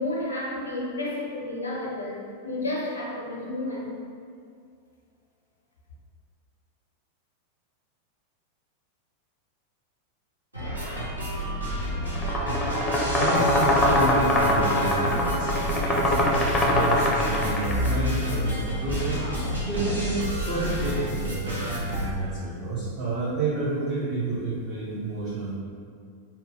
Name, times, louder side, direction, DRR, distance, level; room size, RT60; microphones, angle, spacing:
voice 1, 0.0-4.0, left 1 dB, 75° left, -3 dB, 0.6 m, -31 dB
sound 1, 10.5-22.0, equal, 85° right, 0.7 m, -29 dB
sound 2, 12.1-17.9, left 1 dB, 10° left, 0.5 m, -23 dB
voice 2, 13.2-16.3 16.7-19.2 19.6-25.5, right 2 dB, 45° right, -9 dB, 0.6 m, -30 dB
2.7 x 2.1 x 3.4 m, 2.3 s
figure-of-eight pair, 90°, 0 cm